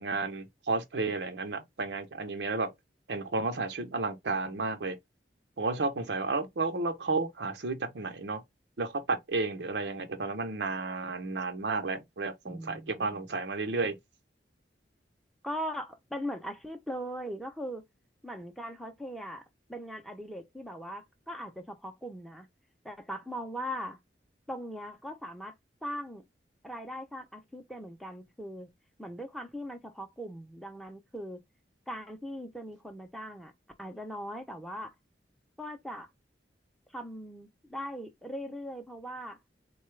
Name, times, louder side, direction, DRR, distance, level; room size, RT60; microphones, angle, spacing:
voice 1, 0.0-2.7 3.1-5.0 5.6-8.4 8.8-14.0, right 3 dB, 80° right, 0.7 m, -32 dB
voice 2, 12.4-13.3 15.4-17.8 18.2-19.4 19.7-22.5 22.8-24.0 24.5-25.5 25.8-26.2 26.6-28.7 29.0-31.4 31.9-33.5 33.8-34.9 35.6-36.1 36.9-39.4, equal, ahead, 0.6 m, -40 dB
4.0 x 2.2 x 3.1 m
head